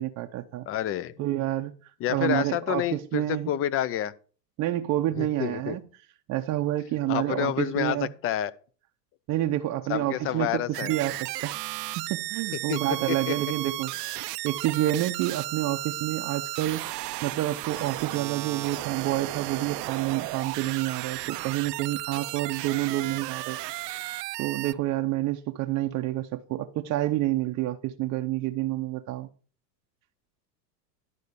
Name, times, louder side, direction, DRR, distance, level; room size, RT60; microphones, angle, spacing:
voice 1, 0.0-0.7 1.2-1.7 2.1-3.5 4.6-5.8 6.3-8.1 9.3-11.5 12.0-13.9 14.4-23.6 24.4-29.3, right 15 dB, 35° right, 0.6 m, -28 dB
voice 2, 0.7-1.1 2.0-4.1 5.2-5.8 7.1-8.5 9.9-10.9 12.7-12.8 13.1-13.3, left 12 dB, 30° left, 0.5 m, -29 dB
sound 1, 10.7-24.7, right 18 dB, 75° right, 0.6 m, -34 dB
11.0 x 4.2 x 6.7 m
hypercardioid pair, 110°, 48 cm